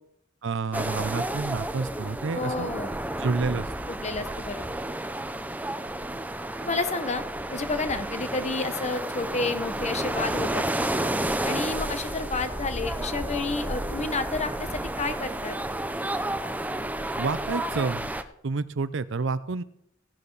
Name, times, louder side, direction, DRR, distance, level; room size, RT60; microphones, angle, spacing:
voice 1, 0.4-2.7 3.2-3.7 17.2-18.1 18.4-19.6, right 4 dB, 70° right, 15 dB, 0.6 m, -29 dB
sound 1, 0.7-18.2, right 1 dB, 10° right, 0.6 m, -31 dB
voice 2, 2.3-2.9 3.9-4.7 6.6-7.2 7.5-10.9 11.4-15.6, left 3 dB, 35° left, 9 dB, 1.1 m, -30 dB
16.0 x 11.0 x 4.0 m, 0.77 s
head